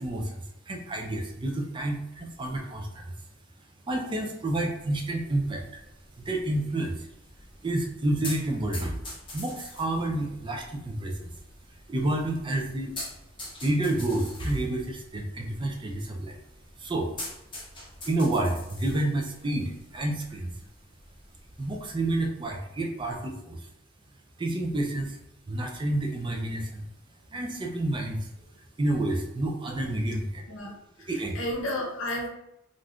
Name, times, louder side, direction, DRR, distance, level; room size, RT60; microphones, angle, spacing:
voice 1, 0.0-3.1 3.9-5.7 6.2-7.1 7.6-9.0 9.3-11.3 11.9-13.0 13.6-16.4 16.8-17.1 18.0-20.6 21.6-23.7 24.4-25.2 25.5-26.9 27.3-28.3 28.6-30.4 31.0-31.3, right 1 dB, 25° right, 2 dB, 0.4 m, -29 dB
sound 1, 4.8-22.2, left 1 dB, 25° left, 0.7 m, -46 dB
voice 2, 31.0-32.3, left 1 dB, 80° left, 0 dB, 0.8 m, -32 dB
2.5 x 2.3 x 3.4 m, 0.83 s
head